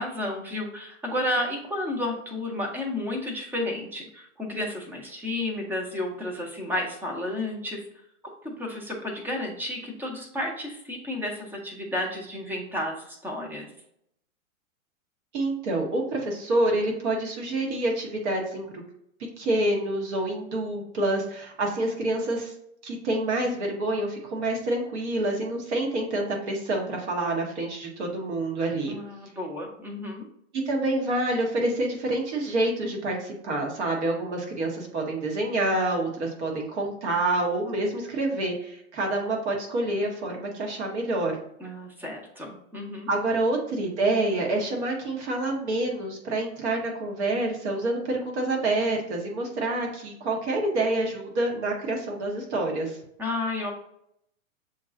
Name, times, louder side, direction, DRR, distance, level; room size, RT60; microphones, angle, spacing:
voice 1, 0.0-7.8 8.4-13.7 28.9-30.2 41.6-43.1 53.2-53.7, left 1 dB, 5° right, 0 dB, 0.7 m, -32 dB
voice 2, 15.3-18.8 19.4-22.5 22.8-29.0 30.6-41.4 43.1-53.0, right 2 dB, 55° right, 0 dB, 1.7 m, -27 dB
6.8 x 3.0 x 2.5 m, 0.73 s
hypercardioid pair, 120°, 41 cm